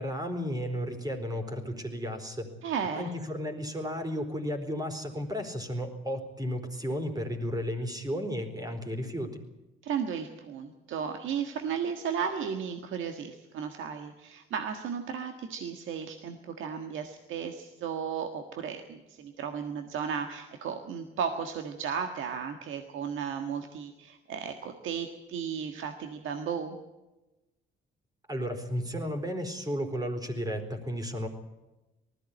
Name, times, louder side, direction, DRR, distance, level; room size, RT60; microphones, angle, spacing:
voice 1, 0.0-2.5 2.9-9.4 28.3-31.3, equal, 20° right, 4 dB, 4.2 m, -33 dB
voice 2, 2.6-3.1 9.8-26.8, right 7 dB, 80° right, 6 dB, 1.6 m, -34 dB
19.5 x 14.5 x 9.8 m, 1.1 s
cardioid pair, 90°, 20 cm